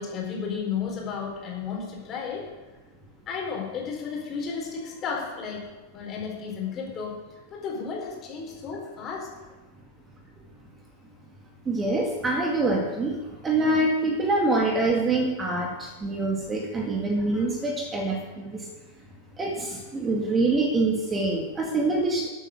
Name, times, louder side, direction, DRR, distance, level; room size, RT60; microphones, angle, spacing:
voice 1, 0.0-2.5 3.3-5.6 5.9-7.1 7.5-9.3 17.3-17.4, left 6 dB, 30° left, -1 dB, 4.1 m, -33 dB
voice 2, 11.7-13.2 13.4-18.5 19.4-22.3, right 2 dB, 15° right, 0 dB, 2.1 m, -25 dB
13.5 x 8.2 x 6.5 m, 1.2 s
figure-of-eight pair, 90°, 0 cm